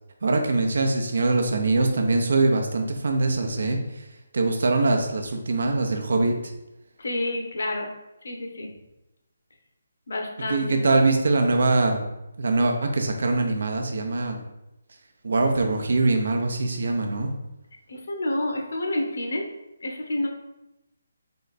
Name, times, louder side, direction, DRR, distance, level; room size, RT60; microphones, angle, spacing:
voice 1, 0.2-4.0 4.3-6.3 10.5-12.0 12.4-14.4 15.2-17.3, right 3 dB, 65° right, 4 dB, 0.7 m, -23 dB
voice 2, 7.0-7.9 8.2-8.7 10.1-10.8 17.9-19.5 19.8-20.3, left 1 dB, 65° left, 2 dB, 0.9 m, -29 dB
3.9 x 3.4 x 4.0 m, 0.94 s
hypercardioid pair, 175°, 0 cm